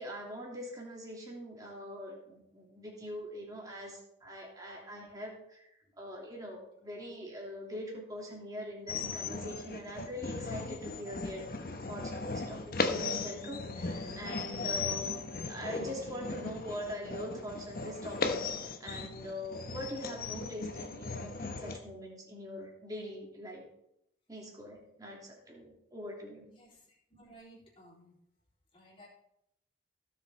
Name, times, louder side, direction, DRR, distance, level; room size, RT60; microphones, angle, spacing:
voice 1, 0.0-11.4 11.8-18.3 18.8-23.6 24.3-26.4, equal, 20° right, -2 dB, 2.8 m, -43 dB
sound 1, 8.9-21.8, left 3 dB, 55° left, 1.0 m, -37 dB
voice 2, 27.1-28.1 28.7-29.1, right 1 dB, 30° left, -4 dB, 3.9 m, -56 dB
16.0 x 7.2 x 4.3 m, 0.78 s
head